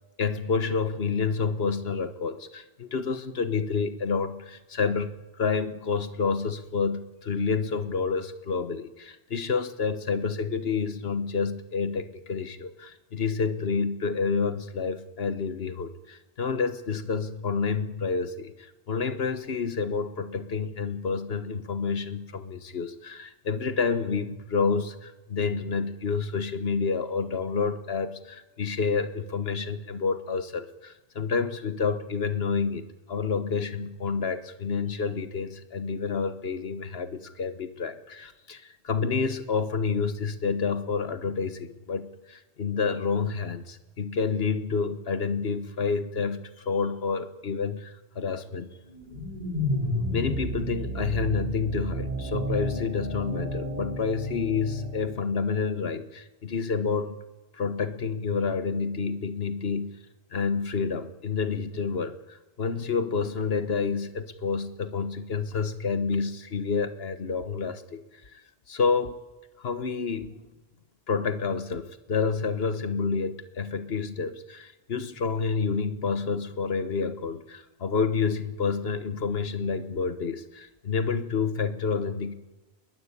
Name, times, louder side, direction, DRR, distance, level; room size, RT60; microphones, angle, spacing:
voice 1, 0.2-5.1 5.4-48.7 50.1-57.2 57.5-59.9 60.3-68.0 68.3-68.4 68.7-69.2 69.6-70.4 71.1-82.3, left 5 dB, 80° left, 11 dB, 1.5 m, -29 dB
sound 1, 48.9-55.2, equal, 45° right, 4.4 m, -32 dB
21.5 x 16.0 x 9.9 m, 1.1 s
omnidirectional pair, 1.0 m